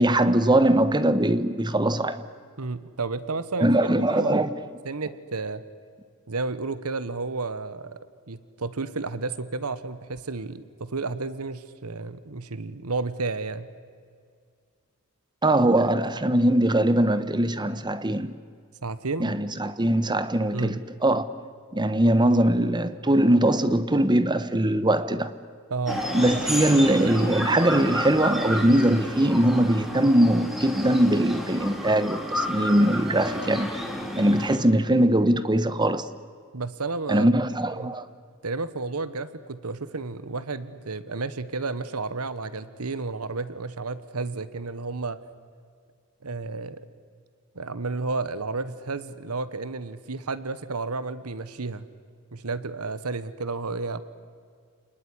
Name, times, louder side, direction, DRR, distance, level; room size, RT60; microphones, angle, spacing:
voice 1, 0.0-2.2 3.6-4.6 15.4-18.3 19.2-21.3 21.7-25.3 26.1-33.7 34.2-36.1 37.1-38.1, right 1 dB, 20° right, 1.1 m, -21 dB
voice 2, 2.6-4.4 4.8-5.6 6.3-8.0 8.3-13.7 18.8-19.4 20.5-20.8 25.7-26.0 36.5-37.3 37.8-37.9 38.4-45.2 46.2-46.9 47.5-51.9 52.3-54.0, right 3 dB, 80° right, 1.2 m, -32 dB
sound 1, 25.9-34.6, equal, ahead, 3.3 m, -31 dB
29.0 x 20.0 x 9.9 m
head